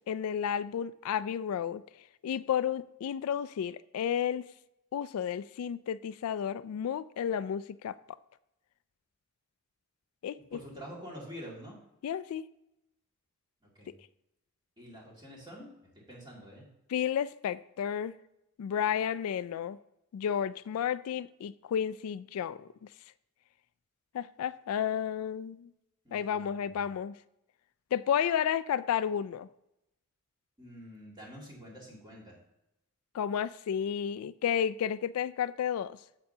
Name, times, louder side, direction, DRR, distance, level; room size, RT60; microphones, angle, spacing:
voice 1, 0.0-1.8 2.2-4.4 4.9-8.0 10.2-10.6 12.0-12.5 16.9-18.2 18.6-19.8 20.1-22.9 24.1-25.7 26.1-27.1 27.9-29.5 33.1-36.0, left 8 dB, 80° left, 0.3 m, -32 dB
voice 2, 10.5-11.8 13.6-13.9 14.8-15.7 16.1-16.7 26.0-26.7 30.6-32.4, equal, 20° right, 2.3 m, -47 dB
8.7 x 7.8 x 2.7 m
head